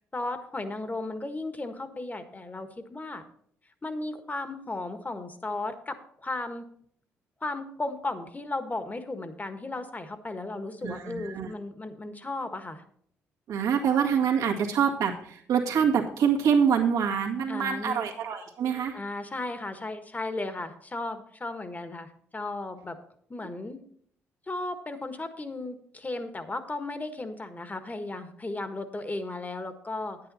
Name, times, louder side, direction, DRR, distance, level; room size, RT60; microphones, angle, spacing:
voice 1, 0.1-3.2 3.8-6.6 7.4-12.8 17.5-18.0 18.9-23.0 23.3-23.8 24.5-30.2, left 2 dB, 25° left, 9 dB, 1.5 m, -35 dB
voice 2, 10.8-11.5 13.5-19.0, right 7 dB, 75° right, 0 dB, 1.9 m, -25 dB
10.0 x 9.0 x 4.2 m, 0.65 s
hypercardioid pair, 50°, 6 cm